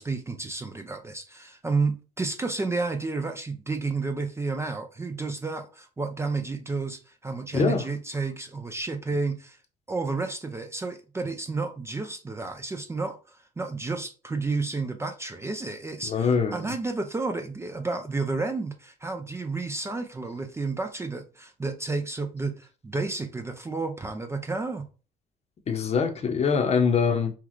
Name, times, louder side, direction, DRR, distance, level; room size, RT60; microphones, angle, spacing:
voice 1, 0.0-9.6 9.9-24.9, right 3 dB, 15° right, 0.5 m, -31 dB
voice 2, 7.5-7.9 16.1-16.7 25.7-27.3, left 6 dB, 40° left, 0.8 m, -24 dB
5.6 x 2.4 x 3.1 m
cardioid pair, 110°, 17 cm